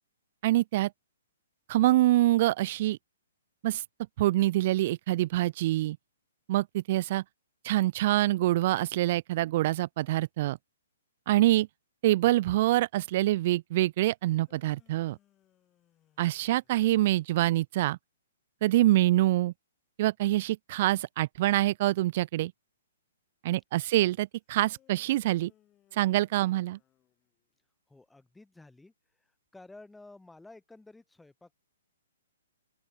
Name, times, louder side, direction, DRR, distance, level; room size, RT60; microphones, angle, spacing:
voice 1, 0.4-0.9 1.7-3.0 3.6-3.8 4.2-6.0 6.5-7.2 7.6-10.6 11.3-11.7 12.0-15.2 16.2-18.0 18.6-19.5 20.0-22.5 23.4-25.5 25.9-26.8, right 16 dB, 45° right, 0.4 m, -25 dB
sound 1, 14.2-17.5 24.6-27.6, left 12 dB, 20° left, 5.9 m, -67 dB
voice 2, 23.9-24.2 27.9-31.5, left 2 dB, 5° left, 3.6 m, -53 dB
open air
hypercardioid pair, 135°, 0 cm